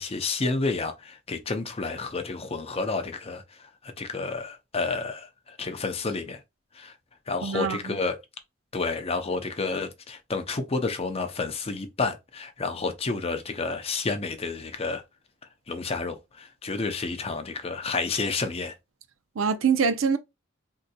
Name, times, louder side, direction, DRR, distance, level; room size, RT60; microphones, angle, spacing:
voice 1, 0.0-6.4 6.7-6.9 7.3-8.2 8.7-15.0 15.7-18.7, left 3 dB, 30° left, 0.6 m, -30 dB
voice 2, 7.4-8.0 19.4-20.2, right 6 dB, 75° right, 0.5 m, -24 dB
3.7 x 2.7 x 2.2 m
head